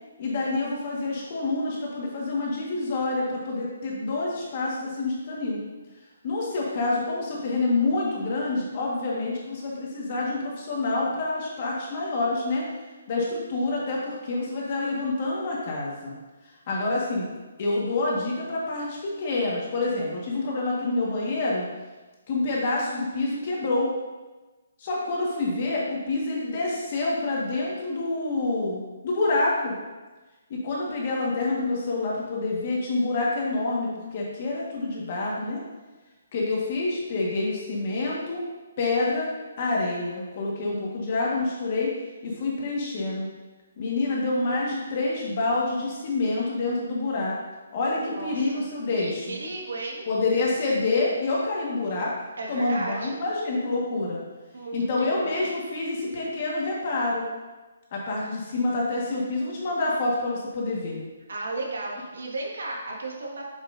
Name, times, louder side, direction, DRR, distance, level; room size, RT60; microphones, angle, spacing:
voice 1, 0.2-5.6 6.2-12.7 13.1-16.1 16.7-17.3 17.6-21.7 22.3-23.9 24.8-29.7 30.5-35.6 36.3-38.4 38.8-39.3 39.6-41.9 42.2-43.3 43.8-47.3 47.7-49.4 50.1-52.1 52.5-54.2 54.7-57.2 57.9-61.0, left 2 dB, 35° left, -4 dB, 1.6 m, -27 dB
voice 2, 48.0-48.6 49.0-50.1 52.4-53.2 54.5-55.5 61.3-63.5, right 2 dB, 80° right, -1 dB, 1.8 m, -34 dB
7.2 x 7.1 x 2.7 m, 1.2 s
hypercardioid pair, 175°, 0 cm